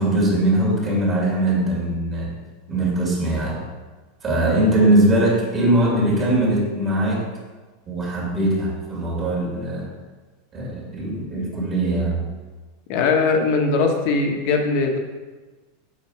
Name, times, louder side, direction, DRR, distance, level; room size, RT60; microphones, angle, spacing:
voice 1, 0.0-2.3 2.7-3.6 4.2-7.3 7.9-9.9 10.5-12.2, right 1 dB, 25° right, -4 dB, 2.5 m, -21 dB
voice 2, 12.9-15.0, left 4 dB, 55° left, 3 dB, 1.3 m, -20 dB
7.3 x 5.2 x 4.9 m, 1.3 s
supercardioid pair, 150°, 0 cm